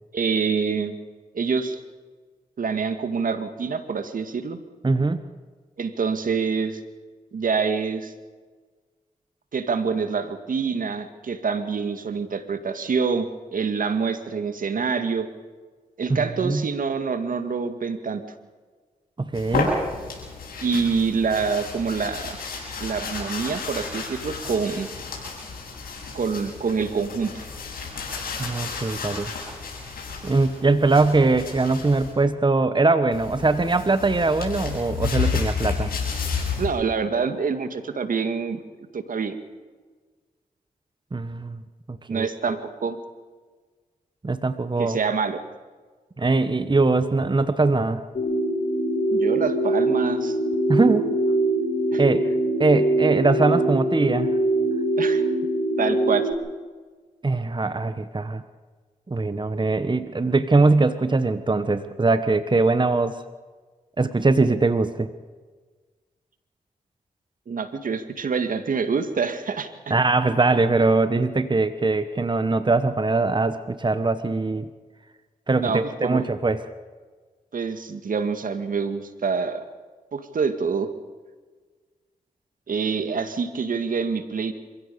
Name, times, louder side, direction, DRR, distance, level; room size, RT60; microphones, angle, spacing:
voice 1, 0.1-1.0 1.3-1.8 2.6-4.6 5.8-6.8 7.3-8.1 9.5-15.3 16.0-18.2 20.6-22.4 22.8-24.9 26.1-27.4 36.6-38.6 38.9-39.4 42.1-43.0 44.8-45.4 49.1-50.4 51.9-52.0 55.0-55.2 55.8-56.2 67.5-69.9 75.5-76.3 77.5-79.6 80.1-80.9 82.7-84.5, right 5 dB, 65° right, 9 dB, 2.1 m, -26 dB
voice 2, 4.8-5.2 16.1-16.7 19.2-19.7 28.4-29.3 30.2-35.9 41.1-41.6 41.9-42.6 44.2-45.0 46.2-48.0 50.7-51.2 52.0-52.3 52.6-54.3 57.2-58.4 59.1-63.2 64.0-65.1 69.9-74.7 75.5-76.6, right 3 dB, 30° right, 11 dB, 1.4 m, -21 dB
sound 1, 19.3-32.1 33.1-36.7, left 5 dB, 80° left, 7.4 m, -31 dB
sound 2, 48.1-56.3, right 1 dB, 60° left, 5.5 m, -23 dB
26.5 x 16.0 x 6.9 m, 1.4 s
supercardioid pair, 40°, 15 cm